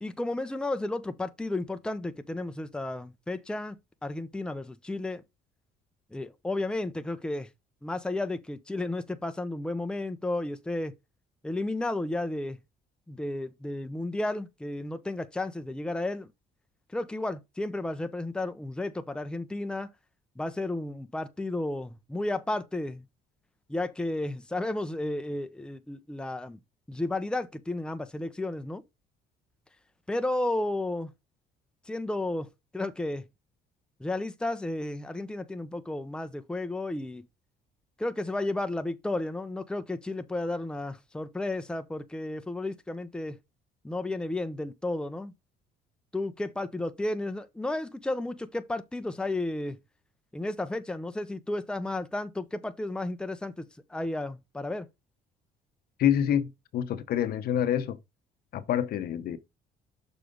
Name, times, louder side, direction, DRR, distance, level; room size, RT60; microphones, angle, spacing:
voice 1, 0.0-5.2 6.1-7.5 7.8-10.9 11.4-12.6 13.1-16.3 16.9-19.9 20.4-23.0 23.7-26.6 26.9-28.8 30.1-31.1 31.9-32.5 32.7-33.2 34.0-37.3 38.0-43.4 43.8-45.3 46.1-49.8 50.3-54.9, left 2 dB, 5° left, 0.7 m, -33 dB
voice 2, 56.0-58.0 58.5-59.4, left 10 dB, 65° left, 1.0 m, -27 dB
6.7 x 4.9 x 3.9 m
cardioid pair, 110°, 17 cm